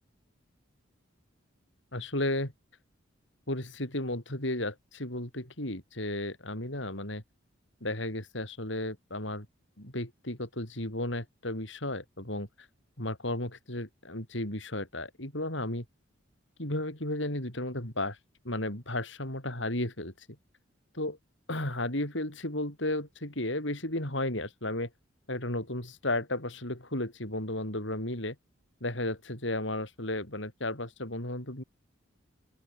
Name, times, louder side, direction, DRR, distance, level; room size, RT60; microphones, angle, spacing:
voice 1, 1.9-2.5 3.5-7.2 7.8-9.5 9.8-12.5 13.0-15.8 16.6-18.2 18.4-20.1 21.0-21.2 21.5-24.9 25.3-28.4 28.8-31.6, left 1 dB, 70° left, 6.5 m, -34 dB
open air
head